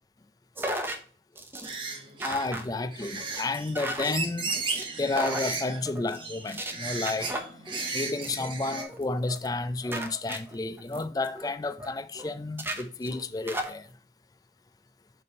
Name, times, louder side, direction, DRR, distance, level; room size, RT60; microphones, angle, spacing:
sound 1, 0.6-1.0 1.4-1.7 2.2-2.7 3.0-3.4 3.7-4.1 4.5-4.9 5.2-5.5 5.8-6.2 6.5-6.7 7.1-7.9 8.2-8.5 8.8-9.0 9.3-9.6 9.8-11.9 12.1-12.3 12.6-13.7, right 1 dB, 15° right, 0.7 m, -35 dB
sound 2, 1.6-8.8, right 4 dB, 30° right, 1.1 m, -36 dB
voice 1, 2.2-4.6 5.0-7.6 7.9-13.9, left 3 dB, 20° left, 0.3 m, -31 dB
6.7 x 3.4 x 5.3 m
head